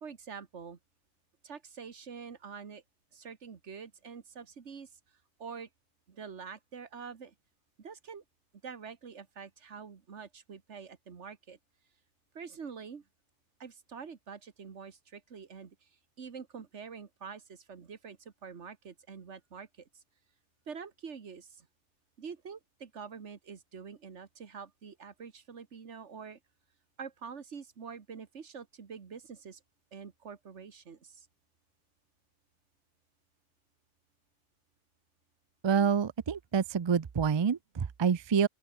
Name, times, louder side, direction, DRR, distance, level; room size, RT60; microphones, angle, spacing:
voice 1, 0.0-0.8 1.4-2.8 3.1-4.9 5.4-5.7 6.1-7.3 7.8-8.2 8.6-11.6 12.4-13.0 13.6-15.8 16.2-19.9 20.7-21.7 22.2-26.4 27.0-29.6 29.9-31.3, right 6 dB, 75° right, 1.8 m, -46 dB
voice 2, 35.6-38.5, right 6 dB, 45° right, 0.3 m, -27 dB
open air
omnidirectional pair, 1.2 m